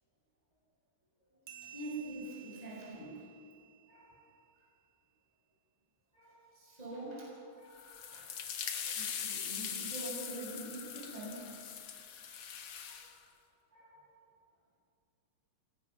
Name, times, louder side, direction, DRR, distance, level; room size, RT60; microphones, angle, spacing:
sound 1, 1.5-4.5, right 12 dB, 65° right, 3.5 m, -55 dB
voice 1, 1.6-3.3 3.9-4.1 6.1-8.3 8.7-11.5 12.8-13.1 13.7-14.0, right 2 dB, 10° right, -5 dB, 6.4 m, -45 dB
sound 2, 7.7-13.1, left 8 dB, 55° left, 1.8 m, -41 dB
25.5 x 19.0 x 6.2 m, 2.4 s
omnidirectional pair, 4.4 m